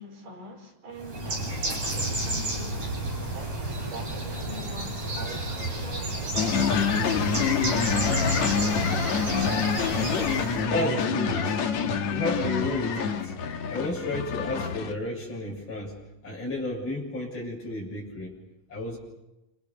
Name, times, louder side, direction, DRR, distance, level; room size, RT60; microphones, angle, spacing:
voice 1, 0.0-2.9 3.3-7.6 7.9-9.4, equal, 75° right, 6.5 m, -43 dB
Bird, 1.0-10.6, right 2 dB, 55° right, 8.8 m, -31 dB
sound 1, 6.4-14.9, left 6 dB, 60° left, 3.0 m, -26 dB
voice 2, 10.7-11.6 12.1-13.3 13.7-16.0 16.2-18.4 18.7-19.0, left 1 dB, 35° left, 7.7 m, -32 dB
30.0 x 28.0 x 7.0 m
omnidirectional pair, 3.7 m